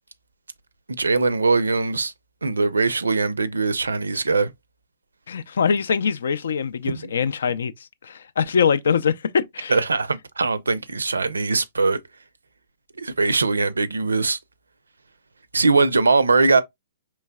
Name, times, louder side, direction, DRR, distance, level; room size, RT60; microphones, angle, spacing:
voice 1, 0.9-2.1 2.4-4.5 6.8-7.1 9.7-12.0 13.0-14.4 15.5-16.6, right 3 dB, 80° right, 0.5 m, -21 dB
voice 2, 5.3-7.7 8.0-9.8, left 6 dB, 65° left, 0.4 m, -23 dB
4.5 x 3.2 x 2.2 m
figure-of-eight pair, 120°, 0 cm